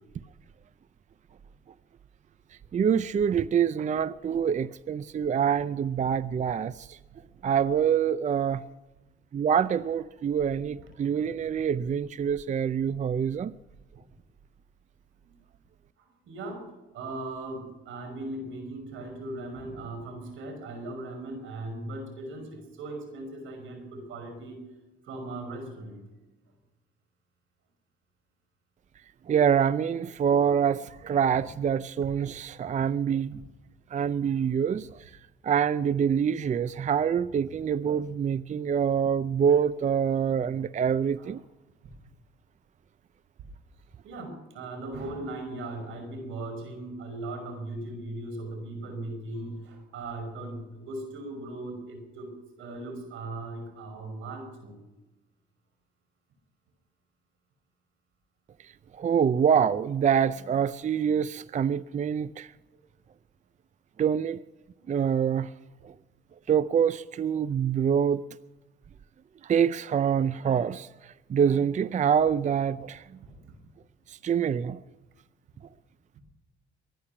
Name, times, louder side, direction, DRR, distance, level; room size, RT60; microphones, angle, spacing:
voice 1, 2.7-7.0 7.4-8.6 9.3-13.5 29.3-33.4 33.9-35.1 35.4-41.4 58.6-62.5 64.0-64.4 64.9-65.5 65.8-65.9 66.5-68.2 69.4-73.1 74.1-74.8, right 8 dB, 40° right, 0.5 m, -26 dB
voice 2, 16.0-16.6 16.9-24.6 25.0-26.0 41.2-41.3 44.0-52.3 52.6-54.8 64.8-64.9 73.4-73.5, right 2 dB, 85° right, 5.6 m, -38 dB
23.5 x 10.5 x 5.9 m
cardioid pair, 90°, 20 cm